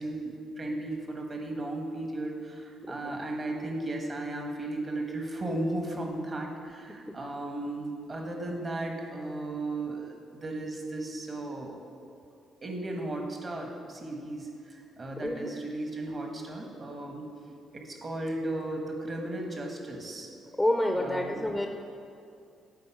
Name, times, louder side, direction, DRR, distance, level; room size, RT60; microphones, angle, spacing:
voice 1, 0.0-11.8 12.6-17.3 17.7-20.3 21.0-21.4, right 2 dB, 40° right, 1 dB, 1.2 m, -35 dB
voice 2, 2.8-3.1 7.1-7.2 15.2-15.5 20.6-21.7, left 1 dB, 5° left, 4 dB, 0.5 m, -28 dB
7.6 x 4.1 x 4.6 m, 2.5 s
supercardioid pair, 60°, 0 cm